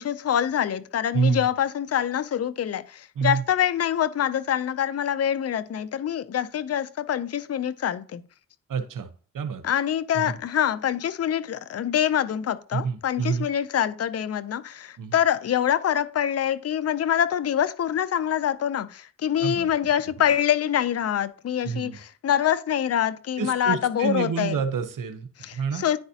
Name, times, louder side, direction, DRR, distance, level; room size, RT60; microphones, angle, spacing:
voice 1, 0.0-8.2 9.6-24.6 25.4-26.0, left 10 dB, 50° left, 0.5 m, -25 dB
voice 2, 1.1-1.5 3.2-3.4 8.7-9.1 9.3-9.6 10.1-10.4 12.7-13.5 15.0-15.1 19.4-19.7 21.6-22.0 23.4-25.9, right 6 dB, 75° right, 0.9 m, -28 dB
10.5 x 4.0 x 2.8 m
cardioid pair, 50°, 33 cm